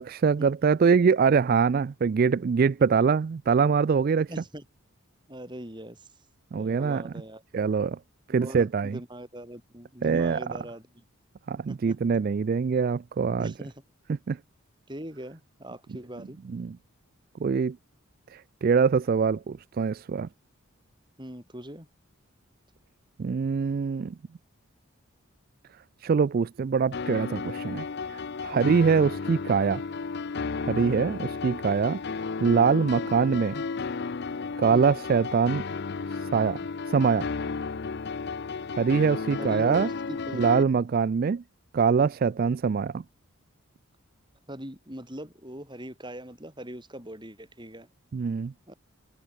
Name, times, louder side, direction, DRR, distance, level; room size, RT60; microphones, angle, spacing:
voice 1, 0.0-4.3 6.5-7.1 7.5-8.0 8.3-9.0 10.0-10.4 11.5-13.5 14.1-14.4 16.5-16.8 17.4-17.8 18.3-20.3 23.2-24.1 26.0-29.8 30.6-32.0 32.4-33.6 34.6-35.7 36.2-36.6 36.9-37.3 38.8-39.9 40.3-41.4 41.7-43.0 48.1-48.5, right 5 dB, 40° right, 0.3 m, -24 dB
voice 2, 4.3-4.6 5.3-6.1 6.6-7.4 8.3-11.0 11.7-12.0 13.4-13.7 14.9-16.4 21.2-21.9 28.5-28.8 30.8-31.1 34.7-35.0 39.4-40.5 44.5-47.9 48.7-48.8, right 1 dB, 20° right, 7.9 m, -41 dB
sound 1, 26.9-40.6, left 4 dB, 50° left, 0.5 m, -33 dB
head